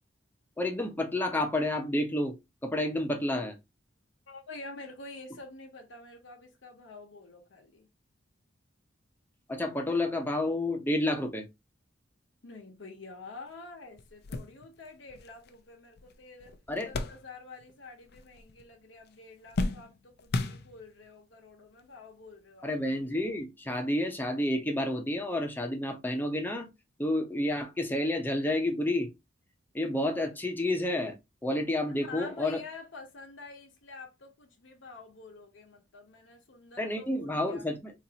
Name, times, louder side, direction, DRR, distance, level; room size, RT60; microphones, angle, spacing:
voice 1, 0.6-2.3 2.6-3.6 9.5-11.5 16.7-16.9 22.6-26.7 27.0-29.1 29.7-31.1 31.4-32.6 36.8-37.9, left 1 dB, 10° left, 0.7 m, -30 dB
voice 2, 4.3-7.9 12.4-16.5 16.8-22.7 31.9-37.7, left 3 dB, 75° left, 0.9 m, -48 dB
sound 1, 13.5-13.6 14.0-17.8 18.0-18.7 19.0-21.1 21.9-22.0 23.3-23.4, left 2 dB, 55° left, 0.4 m, -36 dB
4.1 x 2.6 x 2.8 m
head